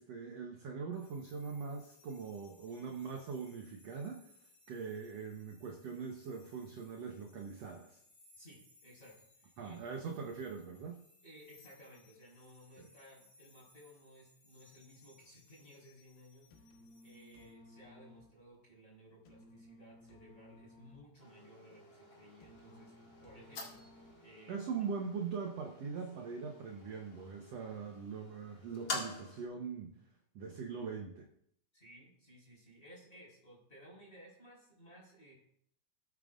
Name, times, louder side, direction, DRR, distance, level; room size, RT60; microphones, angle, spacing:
voice 1, 0.0-4.3 4.7-8.0 9.6-11.0 12.8-12.9 24.5-29.9 30.4-31.3, right 5 dB, 65° right, 2 dB, 1.7 m, -42 dB
sound 1, 0.9-17.5, left 2 dB, 55° left, 3.7 m, -66 dB
voice 2, 8.3-9.9 11.2-16.7 17.0-22.9 23.2-23.8 24.2-24.9 31.7-35.3, equal, 15° left, -3 dB, 4.9 m, -58 dB
sound 2, 16.5-24.5, left 1 dB, 90° left, 3.3 m, -60 dB
sound 3, 21.2-29.4, left 3 dB, 40° left, 2.3 m, -48 dB
19.5 x 9.0 x 2.5 m, 0.71 s
omnidirectional pair, 4.1 m